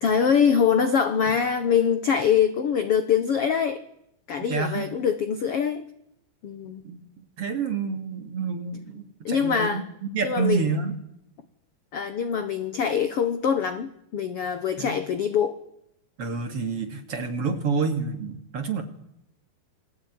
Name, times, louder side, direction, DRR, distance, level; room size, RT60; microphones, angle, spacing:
voice 1, 0.0-3.8 4.3-5.8 6.4-6.8 9.2-9.8 10.2-10.7 11.9-15.6, left 7 dB, 65° left, 10 dB, 1.4 m, -24 dB
voice 2, 4.5-4.9 6.6-9.8 10.1-11.0 14.8-15.0 16.2-18.8, right 5 dB, 45° right, 6 dB, 2.7 m, -28 dB
28.0 x 21.0 x 9.6 m, 0.78 s
omnidirectional pair, 4.5 m